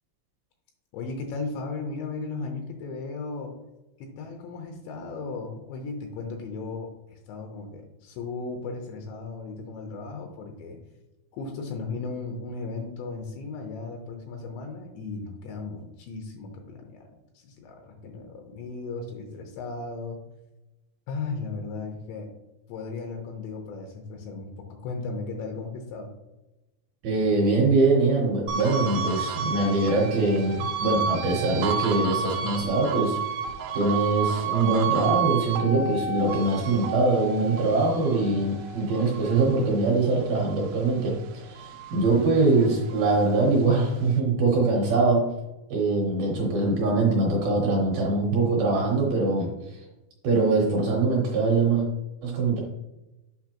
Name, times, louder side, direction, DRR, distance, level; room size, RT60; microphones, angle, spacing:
voice 1, 0.9-3.6 4.0-10.8 11.3-20.2 21.1-22.3 22.7-26.1, left 4 dB, 80° left, 3 dB, 2.9 m, -36 dB
voice 2, 27.0-33.2 33.7-45.3 45.7-49.8 50.2-51.9 52.2-52.6, right 3 dB, 70° right, -2 dB, 2.3 m, -23 dB
sound 1, 28.5-41.1 41.5-43.2, right 6 dB, 90° right, 2.3 m, -31 dB
8.2 x 5.5 x 2.9 m, 1.0 s
omnidirectional pair, 5.4 m